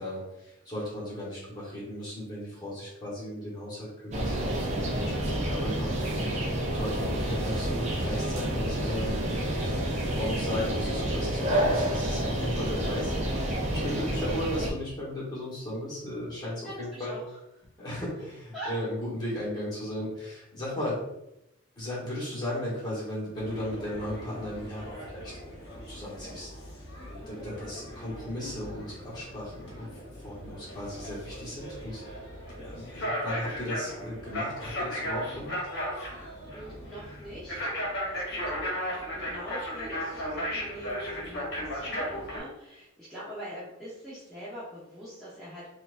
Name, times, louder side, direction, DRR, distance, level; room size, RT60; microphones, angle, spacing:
voice 1, 0.0-5.9 6.7-17.2 17.8-21.0 21.8-26.5 27.1-29.9 30.2-32.0 32.5-35.5, left 1 dB, 20° left, -7 dB, 1.3 m, -36 dB
sound 1, 4.1-14.7, right 1 dB, 35° right, 0.5 m, -29 dB
voice 2, 16.3-17.4 17.9-18.0 18.5-18.7 27.2-27.4 36.5-45.7, equal, ahead, -12 dB, 0.8 m, -43 dB
sound 2, 23.3-42.4, equal, 55° left, 1.1 m, -36 dB
4.3 x 2.5 x 2.5 m, 0.86 s
head